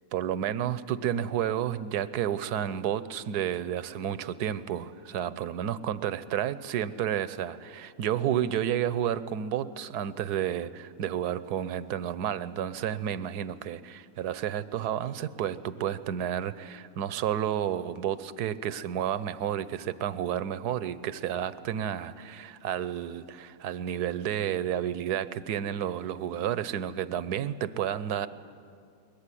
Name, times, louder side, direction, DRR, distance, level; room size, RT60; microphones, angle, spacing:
voice 1, 0.1-28.3, right 10 dB, 70° right, 15 dB, 1.3 m, -31 dB
21.5 x 21.0 x 9.9 m, 2.4 s
omnidirectional pair, 1.8 m